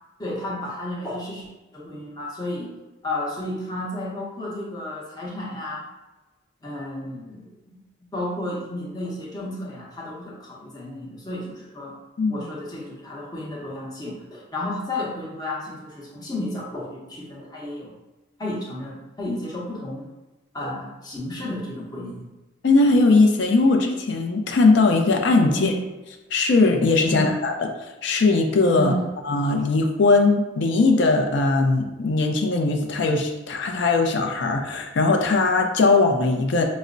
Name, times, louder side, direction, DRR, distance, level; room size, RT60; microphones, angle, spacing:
voice 1, 0.2-5.9 6.6-7.8 8.1-12.0 12.3-17.9 18.4-20.1 20.5-22.3 25.5-25.8 27.1-27.3 28.7-29.1, left 1 dB, 20° left, -4 dB, 0.7 m, -32 dB
voice 2, 22.6-25.7 26.3-27.5 28.0-28.9 29.2-36.6, left 3 dB, 60° left, 3 dB, 0.4 m, -19 dB
5.4 x 2.0 x 2.5 m, 1.1 s
head